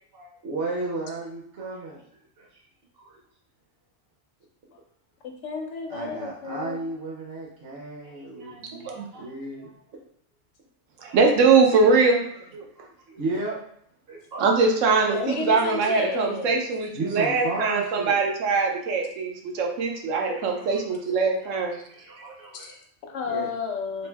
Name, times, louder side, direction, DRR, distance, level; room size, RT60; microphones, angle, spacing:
voice 1, 0.0-2.0 2.4-2.6 3.0-3.2 5.9-9.8 11.0-11.8 12.8-13.6 14.1-14.5 15.0-15.1 16.9-18.7 20.2-20.8 21.4-21.5 21.9-22.8 23.3-23.5 24.0-24.1, right 2 dB, 60° right, -3 dB, 0.9 m, -34 dB
voice 2, 5.4-6.8 15.1-16.6 22.5-22.7 23.1-24.1, left 4 dB, 75° left, 3 dB, 1.0 m, -31 dB
voice 3, 8.7-9.1 11.0-12.2 12.5-12.7 14.4-21.8, right 4 dB, 90° right, 1 dB, 1.0 m, -22 dB
3.1 x 2.6 x 3.3 m, 0.69 s
omnidirectional pair, 1.3 m